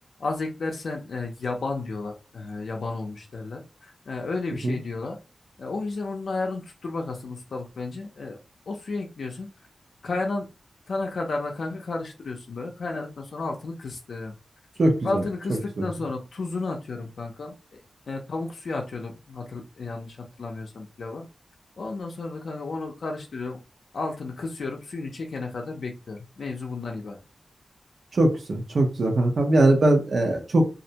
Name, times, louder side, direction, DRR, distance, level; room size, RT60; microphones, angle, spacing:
voice 1, 0.2-5.2 5.6-8.4 8.7-9.5 10.0-10.5 10.9-14.4 15.0-17.8 18.1-21.3 21.8-23.6 23.9-27.2, left 3 dB, 70° left, 1 dB, 0.4 m, -32 dB
voice 2, 14.8-15.2 15.8-15.9 28.1-30.7, right 1 dB, 60° right, 3 dB, 0.7 m, -21 dB
2.4 x 2.1 x 2.7 m, 0.31 s
wide cardioid pair, 105°, 0 cm